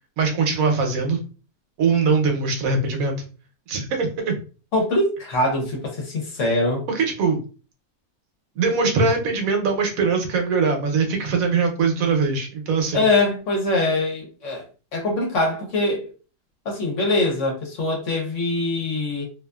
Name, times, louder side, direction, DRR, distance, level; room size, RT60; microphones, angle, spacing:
voice 1, 0.2-1.2 1.8-3.1 3.7-4.4 6.9-7.4 8.6-13.0, right 4 dB, 70° right, 1.1 m, -21 dB
voice 2, 4.7-6.8 12.9-14.7 14.9-16.1 16.6-19.3, left 2 dB, 60° left, 1.0 m, -23 dB
2.7 x 2.4 x 2.3 m
omnidirectional pair, 1.6 m